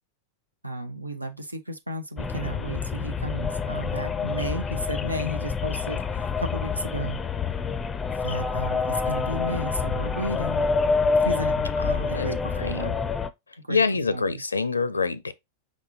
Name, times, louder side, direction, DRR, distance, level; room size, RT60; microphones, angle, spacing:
voice 1, 0.6-7.2 8.1-10.7 11.2-11.6 11.9-13.0 13.6-13.8 14.1-14.4, right 1 dB, 85° right, 0.6 m, -33 dB
sound 1, 2.2-13.3, left 5 dB, 15° left, 0.4 m, -27 dB
voice 2, 11.8-12.3 12.6-12.7 13.7-15.3, left 4 dB, 80° left, 0.4 m, -26 dB
5.2 x 3.6 x 2.7 m
figure-of-eight pair, 90°, 0 cm